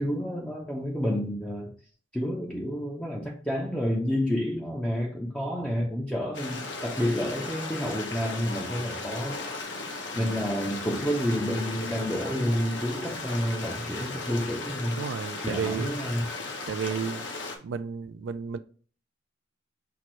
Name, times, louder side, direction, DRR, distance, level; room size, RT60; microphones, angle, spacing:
voice 1, 0.0-1.7 2.1-9.4 10.2-15.0 15.4-16.3, equal, 5° left, 0.5 m, -29 dB
Stream, 6.3-17.6, left 3 dB, 70° left, 0.9 m, -36 dB
voice 2, 10.1-10.5 15.0-15.9 16.7-17.3 17.6-18.6, right 6 dB, 75° right, 0.4 m, -32 dB
5.8 x 2.6 x 3.0 m
head